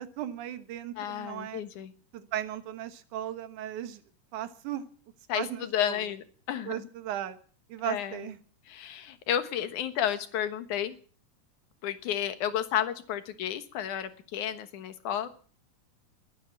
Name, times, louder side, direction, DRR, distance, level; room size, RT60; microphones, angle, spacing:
voice 1, 0.0-1.6 2.1-4.0 4.3-4.9 5.3-6.0 6.7-7.4 7.7-8.4, right 11 dB, 85° right, 11 dB, 2.7 m, -36 dB
voice 2, 1.0-1.9 5.3-6.9 7.8-8.3 8.7-11.0 11.8-15.3, left 10 dB, 85° left, 10 dB, 2.8 m, -32 dB
21.0 x 9.5 x 7.3 m, 0.44 s
omnidirectional pair, 3.4 m